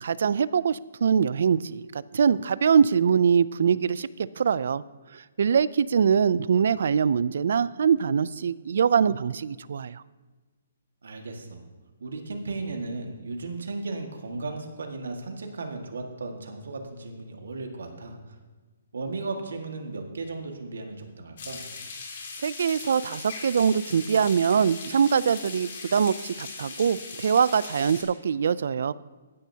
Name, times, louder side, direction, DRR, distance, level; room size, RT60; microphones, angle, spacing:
voice 1, 0.0-4.8 5.1-10.0 22.4-28.9, right 7 dB, 55° right, 18 dB, 0.3 m, -23 dB
voice 2, 11.0-11.6 12.0-18.4 18.9-21.6, right 3 dB, 85° right, 3 dB, 1.8 m, -35 dB
sound 1, 21.4-28.0, left 4 dB, 45° left, 2.3 m, -39 dB
15.0 x 10.0 x 2.8 m, 1.3 s
hypercardioid pair, 170°, 0 cm